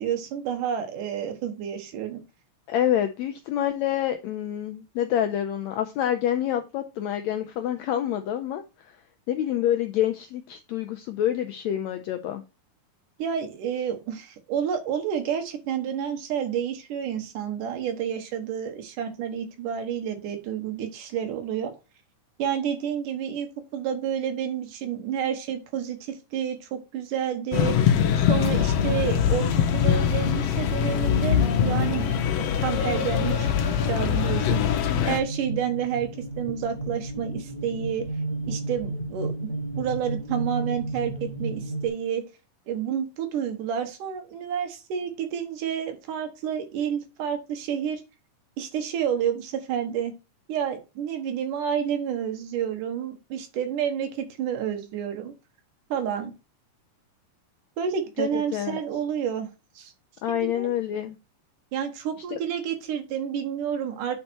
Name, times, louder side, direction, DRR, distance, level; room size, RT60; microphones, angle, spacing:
voice 1, 0.0-2.2 13.2-21.7 22.4-23.5 23.7-27.7 28.2-33.5 33.9-36.1 36.4-38.1 38.5-39.5 39.8-42.2 42.7-48.0 48.6-50.1 50.5-55.3 55.9-56.3 57.8-59.5 59.8-59.9 60.3-60.7 61.7-64.2, right 8 dB, 75° right, 5 dB, 2.7 m, -29 dB
voice 2, 2.7-9.0 9.3-12.4 58.2-58.8 60.2-61.2 62.3-62.4, left 11 dB, 90° left, 6 dB, 1.5 m, -27 dB
sound 1, 27.5-35.2, left 8 dB, 70° left, 1.7 m, -23 dB
sound 2, 32.4-41.9, right 2 dB, 15° right, 2.3 m, -34 dB
8.9 x 4.4 x 4.3 m, 0.28 s
omnidirectional pair, 3.9 m